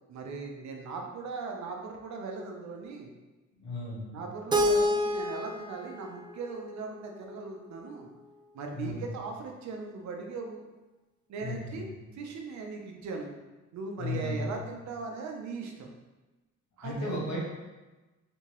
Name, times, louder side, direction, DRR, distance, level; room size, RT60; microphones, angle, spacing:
voice 1, 0.1-3.1 4.1-8.1 8.5-10.6 11.3-11.9 12.1-13.3 13.7-15.9 16.8-17.1, right 4 dB, 65° right, 2 dB, 0.6 m, -39 dB
voice 2, 3.6-4.2 8.7-9.1 11.4-11.9 14.0-14.6 16.8-17.4, left 2 dB, 65° left, -6 dB, 1.5 m, -35 dB
Keyboard (musical), 4.5-7.4, equal, 15° right, 0.3 m, -29 dB
3.4 x 2.9 x 2.9 m, 1.2 s
cardioid pair, 90°, 30 cm